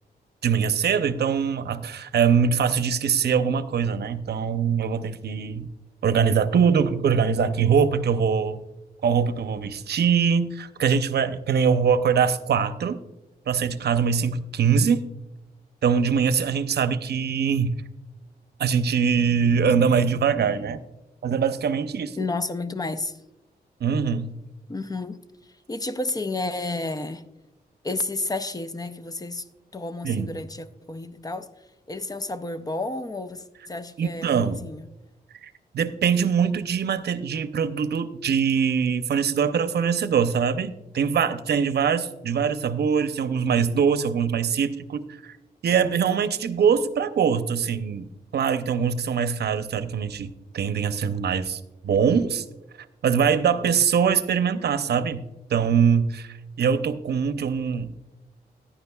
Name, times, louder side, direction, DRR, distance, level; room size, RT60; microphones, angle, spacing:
voice 1, 0.4-5.7 6.0-8.6 9.0-13.0 13.5-15.0 15.8-17.7 18.6-20.8 21.2-22.2 23.8-24.3 30.0-30.4 34.0-34.7 35.4-45.4 45.6-52.4 53.0-55.2 55.5-57.9, right 6 dB, 75° right, 0.6 m, -23 dB
voice 2, 22.2-23.1 24.7-25.2 25.7-27.2 27.8-29.4 29.7-31.5 31.9-34.9, left 2 dB, 20° left, 0.5 m, -31 dB
15.0 x 10.0 x 2.3 m
wide cardioid pair, 130°, 17 cm